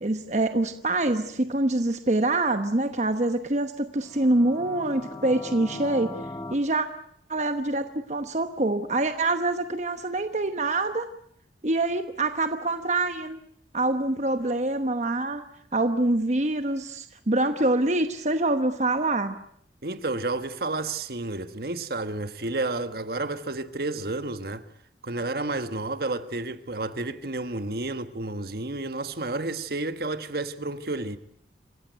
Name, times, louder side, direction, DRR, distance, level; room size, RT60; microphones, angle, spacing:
voice 1, 0.0-6.1 6.5-6.9 7.3-11.1 11.6-13.4 13.7-15.4 15.7-19.3, right 2 dB, 40° right, 1.1 m, -25 dB
sound 1, 4.0-6.5, left 2 dB, 20° left, 1.0 m, -39 dB
voice 2, 19.8-24.6 25.0-31.2, right 2 dB, 60° right, 1.4 m, -31 dB
28.0 x 15.5 x 9.2 m
head